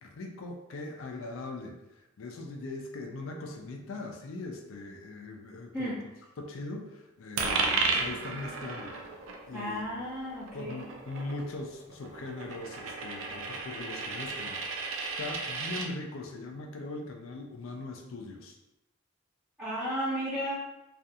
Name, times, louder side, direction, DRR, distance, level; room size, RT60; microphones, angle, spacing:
voice 1, 0.0-6.0 6.4-8.9 9.5-9.9 10.5-14.9 15.2-18.6, left 2 dB, 85° left, 2 dB, 0.4 m, -40 dB
Coin (dropping), 7.4-15.9, right 4 dB, 80° right, 0.4 m, -34 dB
voice 2, 9.5-10.8 19.6-20.5, equal, ahead, -9 dB, 0.6 m, -33 dB
2.4 x 2.3 x 2.7 m, 0.92 s
head